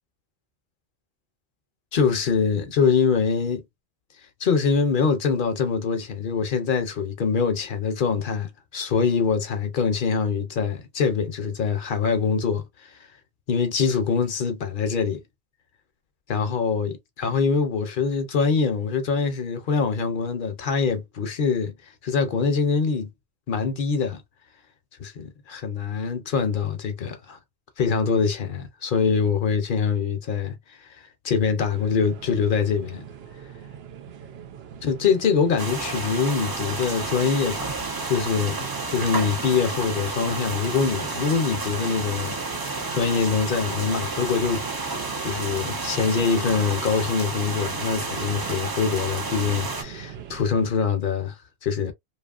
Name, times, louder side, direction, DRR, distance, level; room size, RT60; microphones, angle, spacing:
voice 1, 1.9-3.6 4.4-13.1 13.5-15.2 16.3-23.1 23.5-24.2 25.0-27.4 27.8-33.0 34.8-44.6 45.2-51.9, left 5 dB, 55° left, 0.7 m, -24 dB
sound 1, 31.7-50.7, right 8 dB, 70° right, 0.8 m, -42 dB
sound 2, 35.6-49.8, right 3 dB, 30° right, 0.4 m, -31 dB
2.8 x 2.3 x 2.3 m
omnidirectional pair, 1.1 m